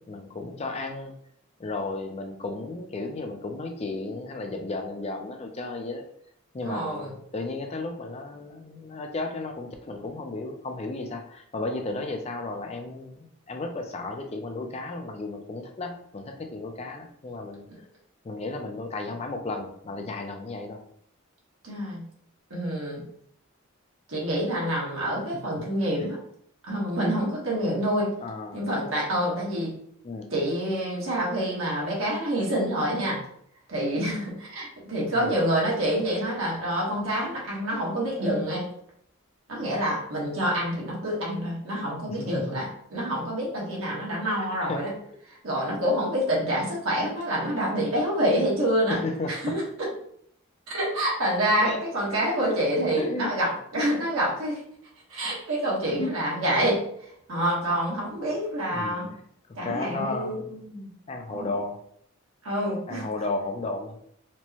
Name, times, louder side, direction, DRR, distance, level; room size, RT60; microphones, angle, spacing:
voice 1, 0.1-1.1 1.6-6.0 6.5-17.7 18.2-20.8 25.3-25.4 26.0-26.1 28.2-28.6 30.0-30.3 35.1-35.4 42.1-42.6 44.4-44.8 48.9-49.6 51.6-51.8 53.0-53.3 56.0-56.1 58.7-59.0 59.6-60.5 61.1-61.8 62.9-64.0, left 2 dB, 30° left, 4 dB, 0.3 m, -34 dB
voice 2, 6.6-7.1 17.7-17.8 21.6-22.0 22.5-23.0 24.1-26.2 26.7-28.1 28.5-29.7 30.3-33.2 33.7-38.7 39.5-44.9 45.4-49.0 49.3-49.6 50.7-54.6 55.1-56.8 57.3-59.1 59.6-60.9 61.3-61.5 62.4-63.1, equal, 75° right, -4 dB, 1.2 m, -27 dB
4.4 x 2.1 x 2.8 m, 0.67 s
head